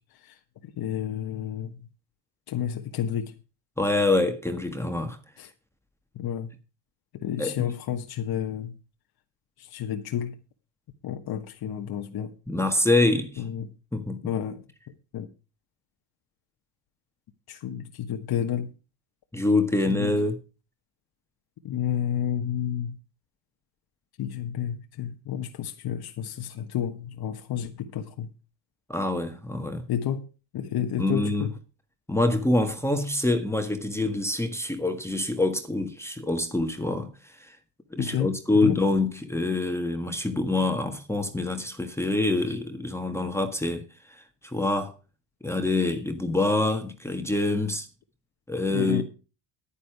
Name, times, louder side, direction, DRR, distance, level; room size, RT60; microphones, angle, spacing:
voice 1, 0.2-1.8 2.5-3.3 5.4-5.5 6.1-6.5 7.1-8.7 9.6-10.3 11.0-12.3 13.4-13.7 14.2-14.6 15.1-15.3 17.5-18.7 19.9-20.1 21.6-23.0 24.2-28.3 29.9-30.2 30.5-31.5 38.0-38.3 38.6-38.8 48.7-49.0, left 9 dB, 55° left, 1.4 m, -30 dB
voice 2, 3.8-5.2 7.4-7.7 12.5-13.4 13.9-14.2 19.3-20.3 28.9-29.8 31.0-31.5 32.1-37.6 37.9-44.9 45.4-47.9 48.5-49.0, left 2 dB, 5° left, 1.6 m, -26 dB
10.0 x 9.9 x 4.7 m
supercardioid pair, 90°, 46 cm